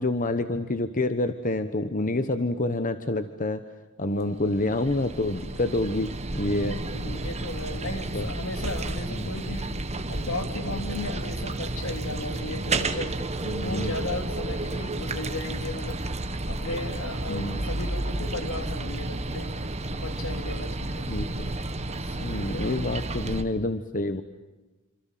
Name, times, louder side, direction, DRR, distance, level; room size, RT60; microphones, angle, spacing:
voice 1, 0.0-3.6 4.0-6.8 8.1-8.3 9.1-9.3 13.4-13.9 17.3-17.6 21.1-21.5 22.2-24.2, left 2 dB, 40° left, 9 dB, 1.2 m, -28 dB
voice 2, 1.9-2.4 4.0-4.5 6.5-9.7 10.1-13.3 13.6-16.0 16.5-19.5 19.9-21.0 22.0-22.8, left 2 dB, 70° left, 6 dB, 3.4 m, -36 dB
sound 1, 4.2-23.4, right 2 dB, 30° right, 1.5 m, -32 dB
28.5 x 26.5 x 7.6 m, 1.1 s
head